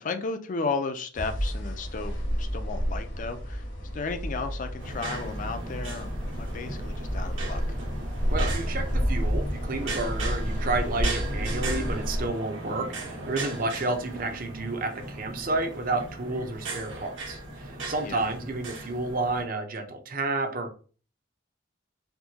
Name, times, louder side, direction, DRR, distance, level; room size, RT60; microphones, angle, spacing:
voice 1, 0.0-7.8 18.0-18.2, left 4 dB, 40° left, 8 dB, 0.4 m, -34 dB
sound 1, 1.1-12.3, equal, 70° left, 1.1 m, -30 dB
sound 2, 4.8-19.4, right 2 dB, 80° right, 1.2 m, -37 dB
voice 2, 8.3-20.7, right 2 dB, 45° right, 5 dB, 0.6 m, -31 dB
4.4 x 2.1 x 2.8 m, 0.38 s
head